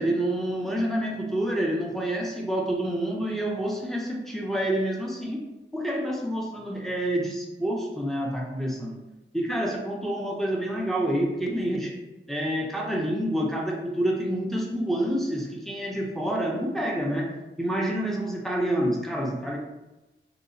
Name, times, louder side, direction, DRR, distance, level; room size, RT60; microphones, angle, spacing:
voice 1, 0.0-5.4 5.7-9.0 9.3-12.0 12.3-17.3 17.6-19.6, right 1 dB, ahead, -2 dB, 0.5 m, -28 dB
2.8 x 2.0 x 2.6 m, 1.0 s
wide cardioid pair, 75°, 20 cm